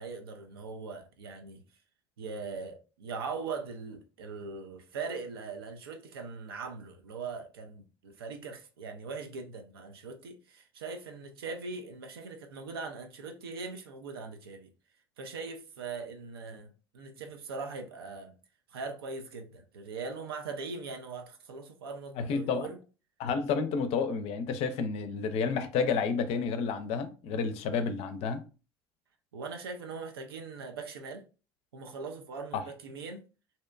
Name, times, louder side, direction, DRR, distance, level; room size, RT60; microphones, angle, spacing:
voice 1, 0.0-1.6 2.2-14.7 15.2-18.3 18.7-22.8 29.3-31.3 31.7-33.2, right 4 dB, 85° right, 0.5 m, -41 dB
voice 2, 22.2-22.7 23.2-28.4 32.5-32.6, left 5 dB, 55° left, 0.5 m, -30 dB
2.7 x 2.1 x 2.4 m
hypercardioid pair, 65°, 12 cm